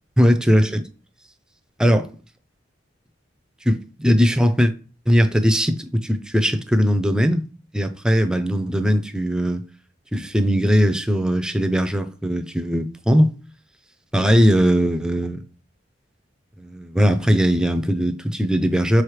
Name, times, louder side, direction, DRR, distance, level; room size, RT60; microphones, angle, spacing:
voice 1, 0.2-0.9 1.8-2.0 3.6-4.7 5.1-7.4 7.7-9.6 10.1-13.3 14.1-15.4 16.6-19.0, equal, 5° right, 0.4 m, -19 dB
6.4 x 4.8 x 3.2 m
head